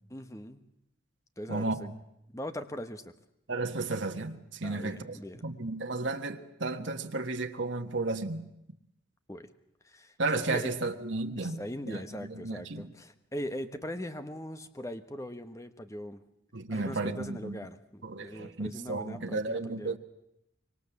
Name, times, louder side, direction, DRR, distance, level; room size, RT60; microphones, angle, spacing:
voice 1, 0.1-0.7 1.4-1.9 2.3-3.1 4.6-5.5 9.3-9.5 9.8-10.1 10.5-10.7 11.4-16.2 16.7-20.0, equal, 15° left, 1.2 m, -40 dB
voice 2, 1.5-1.9 3.5-5.2 5.4-8.4 10.2-11.6 11.9-12.9 16.5-17.6 18.0-20.0, right 3 dB, 75° right, 1.5 m, -33 dB
25.5 x 23.5 x 7.1 m
head